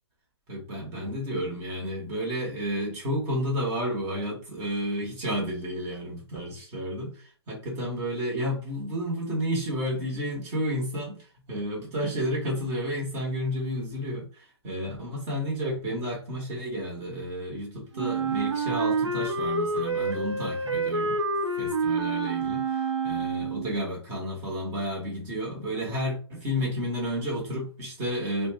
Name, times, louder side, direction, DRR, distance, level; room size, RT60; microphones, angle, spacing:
voice 1, 0.5-21.1 21.6-28.5, equal, 15° right, 1.0 m, -31 dB
Wind instrument woodwind instrument, 17.9-23.8, right 3 dB, 90° right, 0.6 m, -28 dB
2.5 x 2.1 x 3.3 m
hypercardioid pair, 155°, 15 cm